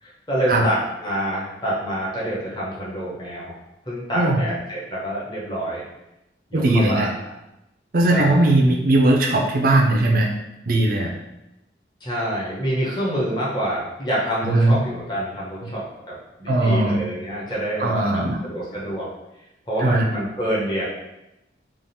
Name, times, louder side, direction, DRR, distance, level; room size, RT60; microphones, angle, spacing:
voice 1, 0.0-3.5 3.9-5.8 6.5-7.1 8.1-8.4 12.0-19.1 19.7-20.8, equal, 25° left, -7 dB, 0.9 m, -27 dB
voice 2, 6.5-7.1 7.9-10.3 10.7-11.1 14.4-14.8 15.6-15.7 16.5-17.0 17.8-18.4 19.8-20.1, right 2 dB, 50° right, 0 dB, 0.5 m, -19 dB
3.6 x 2.4 x 4.1 m, 0.92 s
head